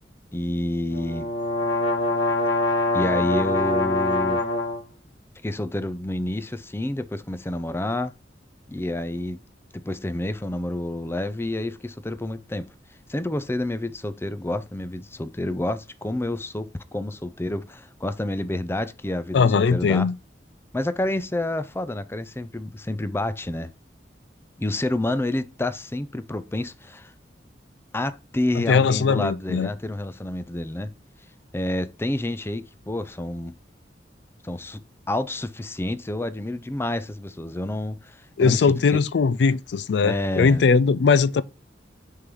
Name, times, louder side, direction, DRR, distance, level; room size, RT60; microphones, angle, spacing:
voice 1, 0.3-1.3 2.9-4.4 5.4-8.1 8.7-9.4 9.7-12.7 13.1-20.1 20.7-23.7 24.6-27.1 27.9-30.9 31.5-33.5 34.4-39.0 40.0-40.6, left 1 dB, 15° left, 0.5 m, -29 dB
sound 1, 0.9-4.8, left 2 dB, 85° left, 1.7 m, -24 dB
voice 2, 19.3-20.1 28.6-29.7 38.4-41.4, left 5 dB, 70° left, 0.4 m, -20 dB
6.5 x 3.8 x 6.1 m
head